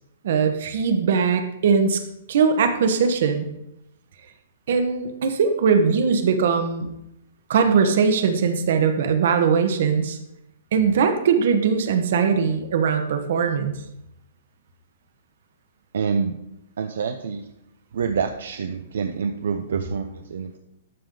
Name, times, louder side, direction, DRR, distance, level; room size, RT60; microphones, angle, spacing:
voice 1, 0.2-2.0 2.3-3.5 4.7-6.9 7.5-10.2 10.7-13.7, right 6 dB, 55° right, 6 dB, 1.2 m, -20 dB
voice 2, 15.9-16.3 16.8-17.5 17.9-20.6, right 6 dB, 75° right, 6 dB, 0.7 m, -27 dB
12.5 x 5.1 x 3.9 m, 0.83 s
hypercardioid pair, 165°, 0 cm